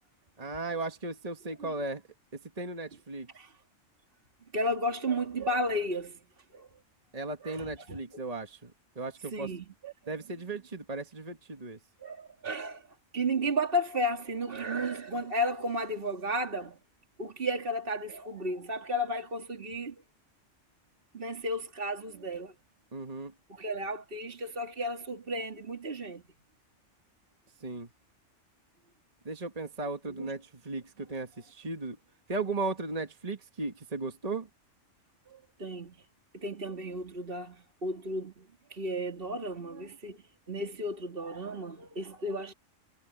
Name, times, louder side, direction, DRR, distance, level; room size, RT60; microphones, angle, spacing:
voice 1, 0.4-2.0 2.6-3.3 7.1-9.5 10.1-11.8 22.9-23.3 27.6-27.9 29.3-32.0 32.3-34.5, right 3 dB, 30° right, 1.8 m, -36 dB
voice 2, 4.5-6.2 6.5-6.7 7.4-8.0 9.3-9.9 12.0-12.9 13.1-16.8 17.2-19.9 21.1-22.5 23.5-26.2 30.1-30.3 35.3-35.9 36.3-40.2 40.5-42.5, equal, 45° right, 2.6 m, -33 dB
omnidirectional pair, 1.3 m